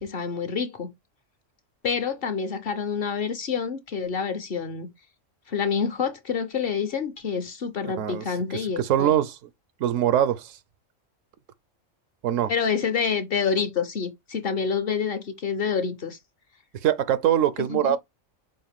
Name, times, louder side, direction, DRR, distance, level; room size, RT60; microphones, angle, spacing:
voice 1, 0.0-0.9 1.8-4.9 5.5-9.1 12.5-16.2 17.7-18.0, left 6 dB, 50° left, 0.9 m, -27 dB
voice 2, 7.8-8.3 8.8-9.4 9.8-10.6 12.2-12.5 16.8-18.0, right 11 dB, 80° right, 1.0 m, -23 dB
5.6 x 2.5 x 3.4 m
omnidirectional pair, 1.3 m